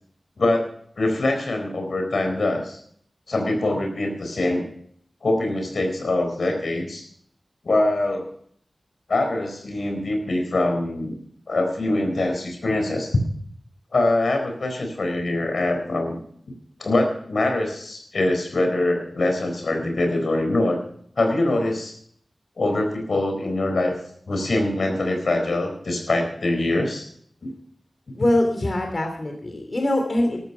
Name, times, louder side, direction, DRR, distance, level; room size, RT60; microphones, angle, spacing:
voice 1, 0.4-0.7 1.0-2.8 3.3-4.6 5.2-7.0 7.6-8.3 9.1-11.2 11.5-13.1 13.9-16.2 16.8-20.8 21.2-21.9 22.6-24.0 24.3-27.1 27.4-27.5, left 2 dB, 75° left, 4 dB, 4.1 m, -23 dB
voice 2, 28.1-30.4, left 1 dB, 50° left, 4 dB, 2.8 m, -23 dB
13.0 x 13.0 x 5.6 m, 0.63 s
wide cardioid pair, 55°, 0 cm